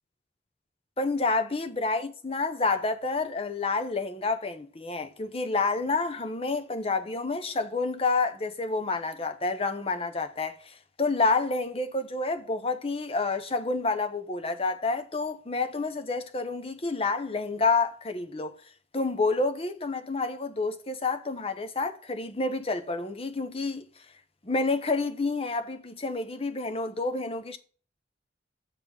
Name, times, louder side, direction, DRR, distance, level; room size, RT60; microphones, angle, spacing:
voice 1, 1.0-18.5 18.9-23.9 24.4-27.6, left 3 dB, 35° left, 0.8 m, -29 dB
7.3 x 4.3 x 6.8 m
head